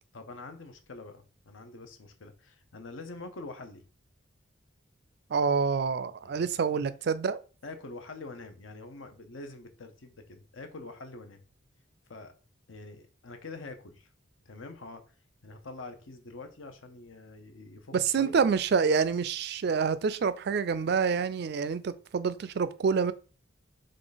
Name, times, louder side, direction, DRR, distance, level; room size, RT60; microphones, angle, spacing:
voice 1, 0.1-3.8 6.2-6.5 6.7-6.8 7.6-11.4 12.1-12.3 12.7-14.1 14.5-15.0 15.4-18.4, left 3 dB, 75° left, 0.8 m, -45 dB
voice 2, 5.3-7.4 17.9-23.1, right 5 dB, 55° right, 0.4 m, -27 dB
3.8 x 3.2 x 3.9 m
head